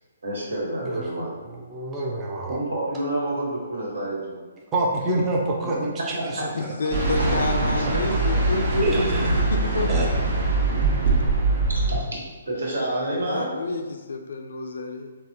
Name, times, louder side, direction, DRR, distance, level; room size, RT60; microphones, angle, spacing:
voice 1, 0.2-1.3 2.5-4.4 7.8-7.9 11.9-12.0 12.4-13.5, right 1 dB, 85° right, -5 dB, 1.3 m, -28 dB
voice 2, 1.5-2.6 4.7-6.7 7.2-7.3 8.2-8.4 8.7-9.4 9.9-10.1, right 2 dB, 15° right, -3 dB, 0.5 m, -27 dB
voice 3, 6.5-10.1 13.1-15.2, left 3 dB, 75° left, 5 dB, 0.4 m, -29 dB
sound 1, 6.9-12.0, right 3 dB, 50° right, 0.9 m, -22 dB
3.9 x 2.0 x 2.8 m, 1.3 s
hypercardioid pair, 155°, 0 cm